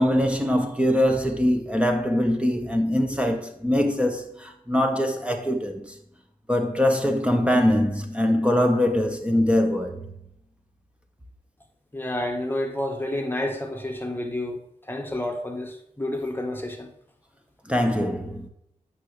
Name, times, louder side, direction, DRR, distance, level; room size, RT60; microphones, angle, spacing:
voice 1, 0.0-5.9 6.5-10.1 17.7-18.5, left 1 dB, 10° right, 1.2 m, -23 dB
voice 2, 11.9-16.9, left 1 dB, 15° left, 1.4 m, -30 dB
8.8 x 5.9 x 3.3 m
cardioid pair, 55°, 14 cm